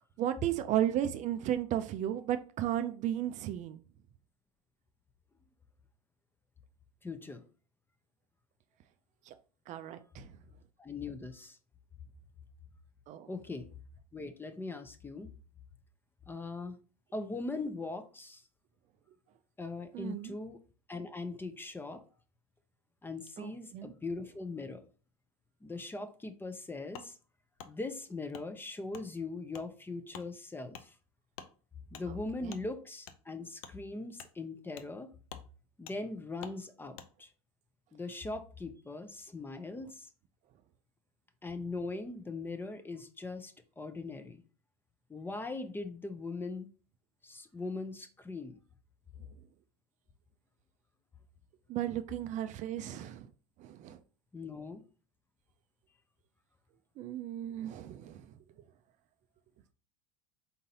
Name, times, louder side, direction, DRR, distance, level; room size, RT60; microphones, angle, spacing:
voice 1, 0.2-3.8 9.3-9.4 9.7-10.3 13.1-13.3 19.9-20.3 23.4-23.9 32.4-32.6 51.7-53.3 53.6-54.0 57.0-58.3, right 11 dB, 40° right, 0.4 m, -34 dB
voice 2, 7.0-7.4 10.8-11.6 13.3-13.7 14.1-15.3 16.3-16.8 17.1-18.4 19.6-20.6 20.9-22.0 23.0-24.9 25.6-27.2 27.6-31.0 31.9-35.1 35.8-37.3 37.9-40.1 41.4-44.4 45.1-46.7 47.2-48.6 54.3-54.8, left 3 dB, 10° left, 0.5 m, -40 dB
Wood, 26.9-27.1 27.6-27.7 28.3-28.5 28.9-29.1 29.5-29.7 30.1-30.3 30.7-30.9 31.3-31.5 31.9-32.1 32.5-32.6 33.0-33.2 33.6-33.7 34.2-34.3 34.8-34.9 35.3-35.5 35.9-36.0 36.4-36.6 36.9-37.1, left 8 dB, 70° left, 0.6 m, -48 dB
4.0 x 3.8 x 2.8 m
hypercardioid pair, 100°, 18 cm